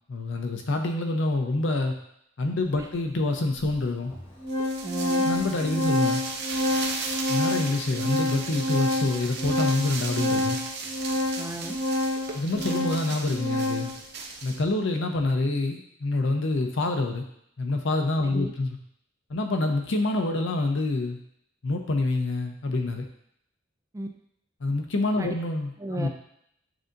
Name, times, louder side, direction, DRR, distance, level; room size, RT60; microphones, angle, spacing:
voice 1, 0.1-1.9 2.4-4.1 5.2-6.2 7.3-10.6 12.3-13.9 14.4-17.2 17.6-18.8 19.3-21.2 21.6-23.1 24.6-26.1, left 2 dB, 65° left, 4 dB, 0.6 m, -26 dB
Organ, 2.7-2.8 3.7-3.8 4.1-14.0, left 1 dB, 30° left, 1.0 m, -28 dB
sound 1, 4.5-14.6, right 4 dB, 55° right, 0.6 m, -36 dB
voice 2, 4.8-5.3 11.4-11.8 18.2-18.5 23.9-24.1 25.2-25.3 25.8-26.1, right 1 dB, 15° right, 4 dB, 0.3 m, -34 dB
7.6 x 2.7 x 2.5 m, 0.73 s
head